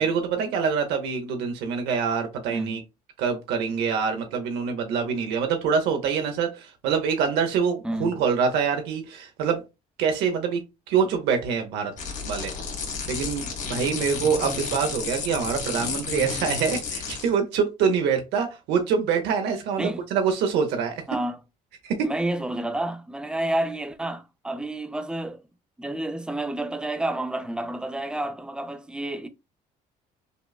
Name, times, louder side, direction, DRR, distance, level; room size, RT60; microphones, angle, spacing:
voice 1, 0.0-2.8 3.2-9.6 10.0-10.6 10.9-11.9 12.2-12.5 13.1-21.0 21.8-22.1, right 6 dB, 90° right, 0.8 m, -25 dB
voice 2, 2.5-2.8 7.8-8.2 19.8-20.0 21.1-21.4 22.0-25.4 25.8-29.3, right 1 dB, 5° right, 0.4 m, -30 dB
sound 1, 12.0-17.3, left 5 dB, 45° left, 1.5 m, -32 dB
5.1 x 2.1 x 2.3 m
cardioid pair, 110°, 17 cm